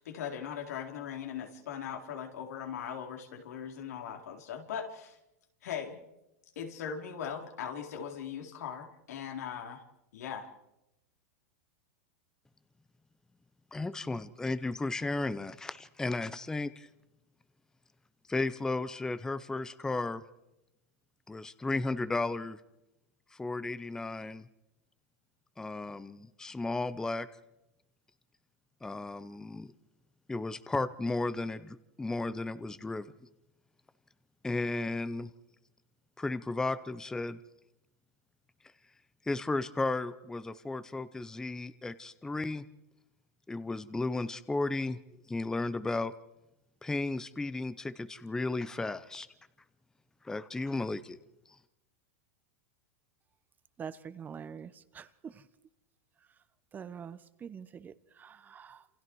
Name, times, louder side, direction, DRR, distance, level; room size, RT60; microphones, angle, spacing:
voice 1, 0.0-5.2 5.6-6.0 6.6-9.8 10.1-10.5, left 8 dB, 80° left, 3 dB, 4.1 m, -39 dB
voice 2, 13.7-16.9 18.3-20.2 21.3-22.6 23.3-24.5 25.6-27.3 28.8-29.7 30.3-33.1 34.4-35.3 36.2-37.4 39.3-42.6 43.5-45.0 45.3-46.1 46.8-49.3 50.2-51.2, left 2 dB, 5° left, 14 dB, 0.8 m, -34 dB
voice 3, 53.8-55.5 56.3-56.4 56.7-58.9, right 7 dB, 20° right, 14 dB, 1.0 m, -45 dB
29.0 x 28.0 x 4.8 m, 0.92 s
supercardioid pair, 135°, 8 cm